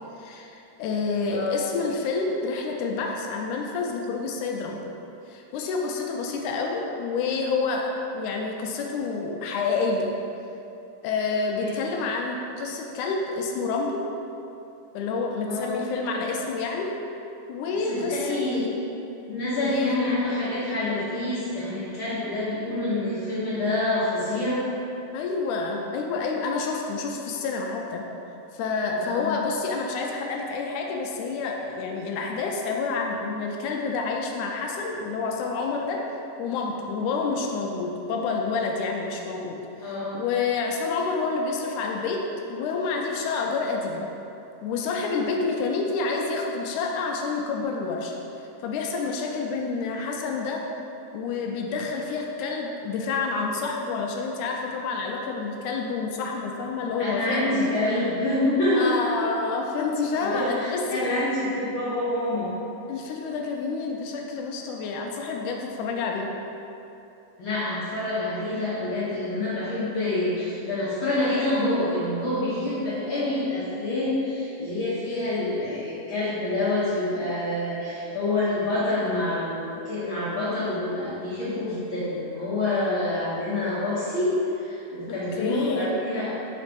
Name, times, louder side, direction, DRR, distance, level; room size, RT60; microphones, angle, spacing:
voice 1, 0.2-4.8 5.3-10.2 11.0-14.0 14.9-16.9 17.5-18.4 19.6-19.9 25.1-28.0 28.5-36.0 36.4-42.2 42.5-44.1 44.6-48.1 48.6-50.6 51.1-57.8 58.8-61.1 62.9-66.3 85.1-85.9, left 4 dB, 80° left, 1 dB, 2.0 m, -28 dB
voice 2, 1.3-1.7 15.4-15.7 17.9-18.7 19.3-24.6 29.0-29.3 39.8-40.2 57.0-59.1 60.1-62.5 67.4-86.5, left 2 dB, 60° left, -10 dB, 1.4 m, -27 dB
5.9 x 4.1 x 5.1 m, 2.9 s
omnidirectional pair, 3.6 m